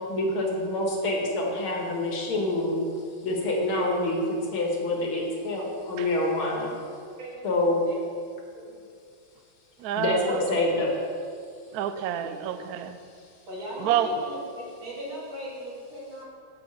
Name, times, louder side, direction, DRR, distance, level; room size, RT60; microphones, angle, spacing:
voice 1, 0.1-2.9 3.2-6.7 7.4-7.8 10.0-10.9, left 1 dB, 75° left, 2.5 m, -26 dB
voice 2, 9.8-10.4 11.7-13.0 13.8-14.1, right 11 dB, 85° right, 0.8 m, -28 dB
voice 3, 13.5-16.2, equal, 70° right, 2.7 m, -38 dB
7.1 x 6.3 x 7.8 m
omnidirectional pair, 2.3 m